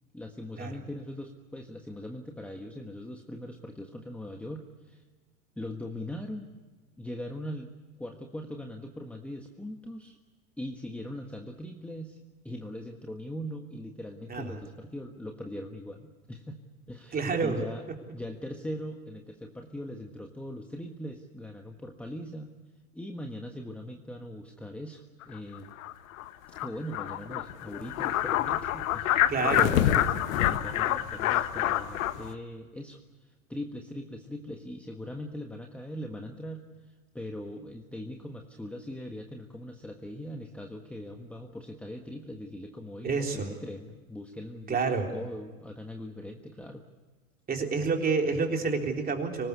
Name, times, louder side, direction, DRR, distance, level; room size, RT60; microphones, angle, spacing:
voice 1, 0.1-5.0 5.6-6.5 7.0-7.7 8.0-10.2 10.6-12.2 12.4-16.6 16.9-17.8 18.1-22.5 22.9-25.7 26.6-46.8, left 1 dB, 5° left, 3 dB, 1.4 m, -40 dB
voice 2, 17.1-17.6 29.1-29.7 43.0-43.5 44.7-45.1 47.5-49.5, right 4 dB, 20° right, 3 dB, 3.8 m, -28 dB
sound 1, 25.2-25.3 25.8-25.9 26.2-26.3 26.6-26.7 26.9-32.3, left 12 dB, 70° left, 1.4 m, -27 dB
24.5 x 19.5 x 8.2 m, 1.3 s
hypercardioid pair, 115°, 42 cm